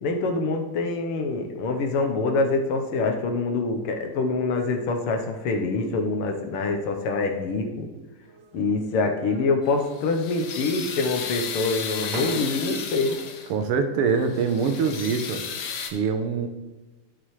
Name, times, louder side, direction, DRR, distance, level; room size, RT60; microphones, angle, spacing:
voice 1, 0.0-7.9 8.5-13.2, left 3 dB, 85° left, 4 dB, 1.8 m, -25 dB
sound 1, 8.2-8.8 9.2-10.0 10.3-11.0 11.7-11.8 12.1-13.1, right 3 dB, 65° right, 0.8 m, -41 dB
sound 2, 9.7-13.6 14.1-15.9, left 7 dB, 65° left, 1.1 m, -34 dB
voice 2, 13.5-15.4 15.9-16.5, right 5 dB, 90° right, 7 dB, 1.8 m, -24 dB
11.5 x 6.1 x 3.2 m, 1.2 s
omnidirectional pair, 2.4 m